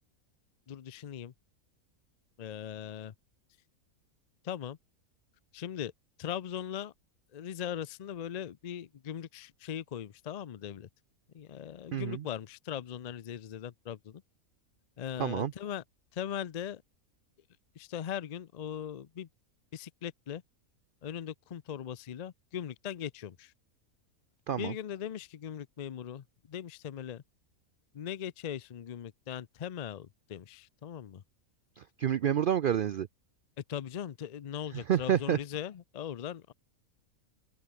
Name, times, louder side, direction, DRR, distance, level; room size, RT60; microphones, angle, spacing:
voice 1, 0.7-1.3 2.4-3.1 4.4-4.8 5.5-5.9 6.2-6.9 7.3-10.9 11.3-14.2 15.0-15.8 16.1-16.8 17.8-19.3 19.7-20.4 21.0-23.5 24.6-27.2 27.9-31.2 33.7-36.5, left 9 dB, 70° left, 0.3 m, -39 dB
voice 2, 11.9-12.3 15.2-15.5 24.5-24.7 31.8-33.1 34.7-35.4, right 9 dB, 85° right, 0.4 m, -29 dB
open air
omnidirectional pair, 1.5 m